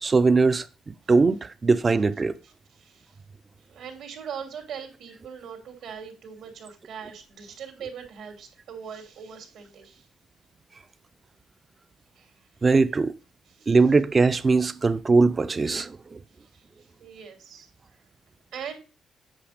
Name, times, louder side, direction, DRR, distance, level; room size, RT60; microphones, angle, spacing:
voice 1, 0.0-2.4 12.6-13.1 13.7-16.2, right 4 dB, 30° right, 0.7 m, -21 dB
voice 2, 2.4-3.2 3.6-10.1 12.1-12.4 13.5-13.8 15.6-15.8 16.4-17.7 18.5-18.8, right 7 dB, 80° right, 2.9 m, -41 dB
9.0 x 5.1 x 5.0 m
cardioid pair, 90°, 0 cm